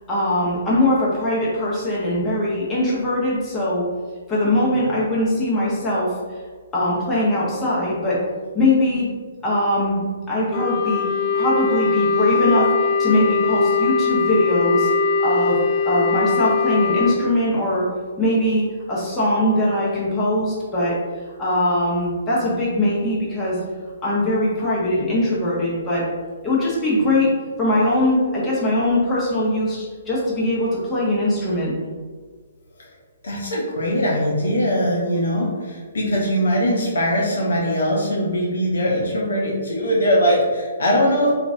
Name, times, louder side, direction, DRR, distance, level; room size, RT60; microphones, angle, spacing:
voice 1, 0.1-3.8 4.3-6.1 6.7-8.2 8.5-9.0 9.4-11.1 11.3-14.9 15.2-17.9 18.2-21.0 21.4-23.6 24.0-26.1 26.4-27.3 27.6-31.7, left 1 dB, 15° left, -8 dB, 0.9 m, -21 dB
Wind instrument woodwind instrument, 10.5-17.2, left 4 dB, 30° left, 0.3 m, -21 dB
voice 2, 33.2-41.3, equal, 70° left, -3 dB, 0.7 m, -21 dB
2.9 x 2.4 x 2.5 m, 1.5 s
figure-of-eight pair, 130°, 0 cm